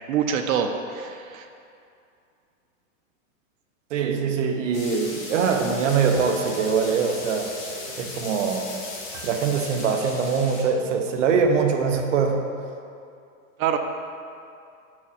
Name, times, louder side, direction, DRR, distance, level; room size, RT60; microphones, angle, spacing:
voice 1, 0.1-1.5 13.6-13.8, right 8 dB, 90° right, 5 dB, 0.8 m, -25 dB
voice 2, 3.9-7.5 8.0-8.7 9.2-12.4, right 5 dB, 65° right, 4 dB, 1.0 m, -23 dB
sound 1, 4.7-10.6, left 3 dB, 35° left, 1.5 m, -37 dB
sound 2, 6.0-12.0, right 2 dB, 35° right, 0.7 m, -41 dB
7.6 x 4.7 x 5.6 m, 2.5 s
supercardioid pair, 175°, 40 cm